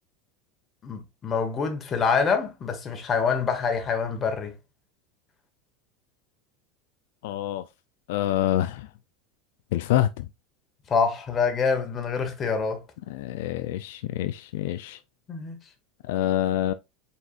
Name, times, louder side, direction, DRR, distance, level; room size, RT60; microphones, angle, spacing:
voice 1, 0.8-4.5 10.9-12.8 15.3-15.6, left 5 dB, 30° left, 1.3 m, -26 dB
voice 2, 7.2-7.6 8.1-8.9 9.7-10.3 13.1-15.0 16.0-16.7, left 13 dB, 75° left, 0.4 m, -26 dB
4.6 x 4.2 x 2.4 m
supercardioid pair, 120°, 0 cm